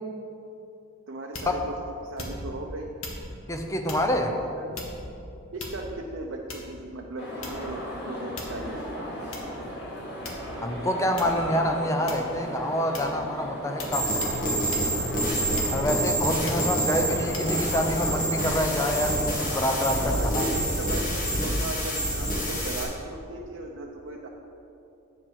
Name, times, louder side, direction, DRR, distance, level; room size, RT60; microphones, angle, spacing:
voice 1, 1.1-2.9 4.6-4.7 5.5-9.1 16.2-16.3 16.7-17.0 20.1-21.1 21.4-24.3, right 2 dB, 70° right, -1 dB, 0.7 m, -37 dB
sound 1, 1.3-1.7 2.2-2.6 3.0-3.3 3.9-4.1 4.7-5.1 5.6-6.0 6.5-6.8 7.4-7.8 8.4-8.7 9.3-9.5 10.2-10.7 11.2-11.4 12.1-12.4 12.9-13.2 13.8-14.0 14.2-14.4 14.7-14.9 15.6-16.0 16.5-16.7 17.3-17.5, left 2 dB, 90° left, 1.5 m, -38 dB
voice 2, 3.5-4.3 10.6-14.1 15.7-20.5, equal, 15° left, 4 dB, 0.7 m, -27 dB
sound 2, 7.2-20.1, equal, 55° left, 2.3 m, -36 dB
sound 3, 13.9-22.8, equal, 40° left, 1.9 m, -27 dB
8.4 x 7.4 x 5.8 m, 2.8 s
head